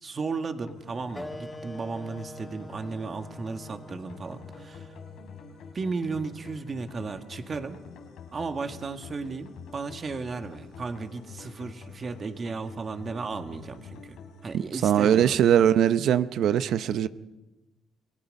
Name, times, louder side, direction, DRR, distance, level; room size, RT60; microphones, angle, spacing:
voice 1, 0.0-5.0 5.7-7.8 8.3-14.2 14.4-15.4, right 4 dB, 40° right, 6 dB, 1.9 m, -35 dB
sound 1, 0.7-15.7, left 6 dB, 85° left, 3.3 m, -47 dB
Wind instrument woodwind instrument, 1.1-6.3, left 1 dB, 15° left, 2.2 m, -45 dB
voice 2, 14.7-17.1, right 9 dB, 75° right, 13 dB, 0.7 m, -21 dB
29.0 x 18.0 x 5.4 m, 1.0 s
cardioid pair, 90°, 0 cm